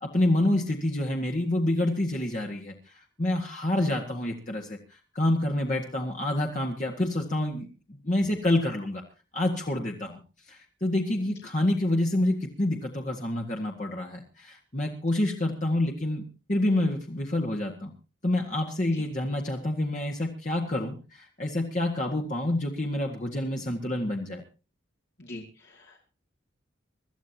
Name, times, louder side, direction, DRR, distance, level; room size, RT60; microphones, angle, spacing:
voice 1, 0.0-7.7 8.0-9.0 9.3-10.2 10.5-16.2 16.5-17.9 18.2-24.4, left 1 dB, 40° left, 1 dB, 1.6 m, -28 dB
voice 2, 25.2-26.0, left 2 dB, 60° left, -2 dB, 2.5 m, -43 dB
24.5 x 13.5 x 2.9 m, 0.32 s
head